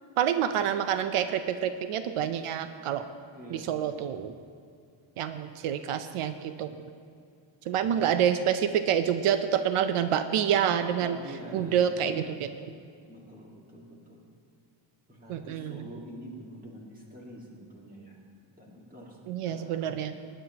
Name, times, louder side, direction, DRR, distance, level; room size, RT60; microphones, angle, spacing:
voice 1, 0.2-3.0 3.5-4.3 5.2-6.8 7.7-11.2 11.5-12.5 15.3-15.9 19.3-20.1, right 9 dB, 85° right, 10 dB, 0.7 m, -27 dB
voice 2, 3.3-3.8 7.7-8.1 11.0-11.9 13.1-14.2 15.1-18.2 18.6-20.0, right 1 dB, 15° right, -3 dB, 1.9 m, -46 dB
19.5 x 9.9 x 2.9 m, 2.3 s
wide cardioid pair, 180°, 50 cm